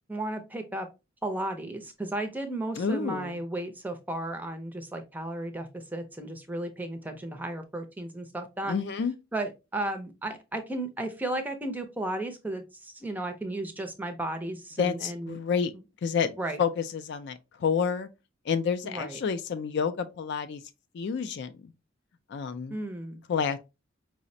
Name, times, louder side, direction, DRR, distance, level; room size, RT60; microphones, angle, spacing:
voice 1, 0.1-0.9 1.2-8.8 9.3-15.4 16.4-16.6 18.8-19.2 22.7-23.2, right 1 dB, 10° right, 0.5 m, -34 dB
voice 2, 2.8-3.4 8.7-9.1 14.8-15.7 16.0-18.1 18.5-20.6 20.9-21.7 22.3-22.8 23.3-23.6, left 6 dB, 60° left, 0.3 m, -29 dB
4.8 x 2.1 x 2.6 m
head